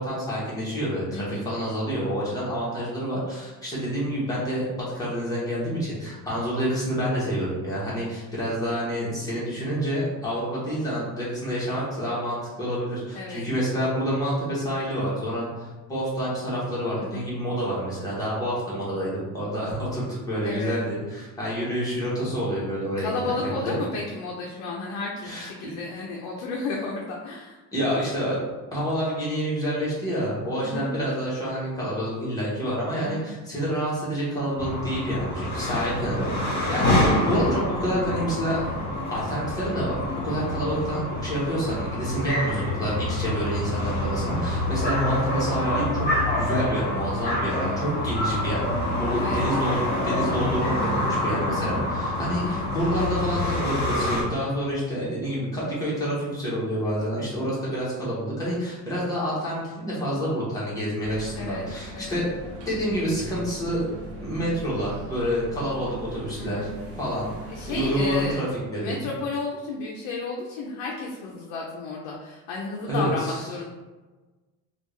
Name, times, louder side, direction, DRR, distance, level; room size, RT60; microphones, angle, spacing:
voice 1, 0.0-23.1 23.4-23.7 25.2-25.5 27.7-28.4 28.7-36.3 36.7-38.6 39.1-46.1 46.4-48.6 49.0-62.3 62.7-63.9 64.2-66.7 67.0-67.3 67.7-69.0 72.9-73.5, equal, 10° left, -8 dB, 1.1 m, -28 dB
voice 2, 1.1-1.4 13.1-13.5 17.0-17.2 20.4-20.8 23.0-27.6 30.6-30.9 33.0-33.3 47.6-48.1 49.1-49.5 52.2-52.7 61.3-61.7 61.9-62.2 66.4-66.7 67.5-68.4 68.8-73.6, left 3 dB, 65° left, -2 dB, 0.6 m, -33 dB
sound 1, 34.6-54.2, left 1 dB, 35° left, 1.4 m, -27 dB
sound 2, 61.0-68.4, right 2 dB, 45° right, 0.7 m, -39 dB
3.4 x 2.4 x 3.2 m, 1.2 s
cardioid pair, 155°, 34 cm